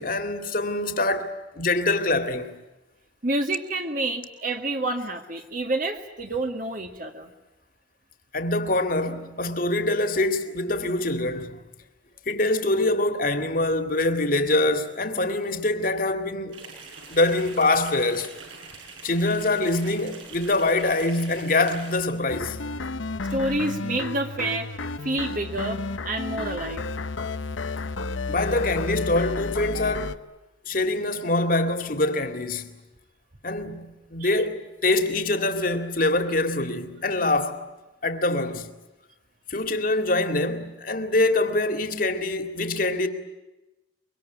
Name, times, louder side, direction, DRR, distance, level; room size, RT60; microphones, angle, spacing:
voice 1, 0.0-2.5 8.3-11.6 12.3-16.6 17.1-18.3 19.0-22.6 28.3-30.2 30.7-32.8 33.4-37.6 38.0-38.7 39.5-43.1, left 2 dB, 45° left, 2.3 m, -24 dB
voice 2, 3.2-7.3 23.3-24.7 25.0-26.8 34.2-34.3, right 2 dB, 45° right, 2.0 m, -28 dB
sound 1, 16.5-22.0, right 4 dB, 80° right, 7.8 m, -44 dB
sound 2, 22.3-30.2, left 3 dB, 75° left, 1.0 m, -31 dB
24.5 x 24.0 x 9.3 m
head